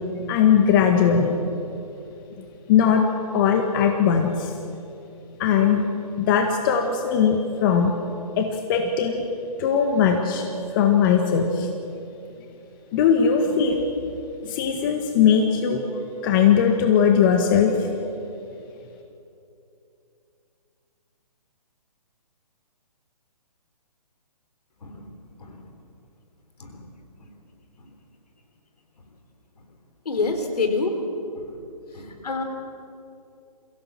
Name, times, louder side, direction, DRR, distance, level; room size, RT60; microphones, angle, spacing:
voice 1, 0.3-1.3 2.7-3.0 3.3-4.5 5.4-5.9 6.2-7.9 8.4-9.2 9.6-10.5 10.7-11.7 12.9-13.9 14.4-15.8 16.2-17.9, left 7 dB, 30° left, 4 dB, 1.6 m, -19 dB
voice 2, 30.1-30.9 31.4-31.6 31.9-32.4, left 3 dB, 75° left, 5 dB, 3.7 m, -27 dB
23.5 x 16.5 x 7.5 m, 2.7 s
hypercardioid pair, 145°, 20 cm